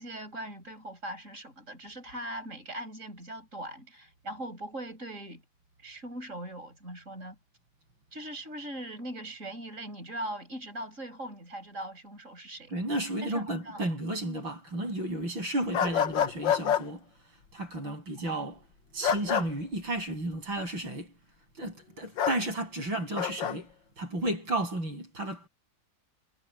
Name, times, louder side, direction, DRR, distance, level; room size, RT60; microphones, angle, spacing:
voice 1, 0.0-5.4 5.8-7.4 8.1-12.7 13.2-13.8 18.2-18.3, right 1 dB, 35° right, 8.2 m, -40 dB
voice 2, 12.7-17.0 17.5-18.6 18.9-21.1 21.6-23.7 24.0-25.5, right 1 dB, 70° right, 8.7 m, -33 dB
sound 1, 15.7-16.8 19.0-19.5 22.2-22.4 23.2-23.5, left 8 dB, 70° left, 1.8 m, -27 dB
omnidirectional pair, 2.2 m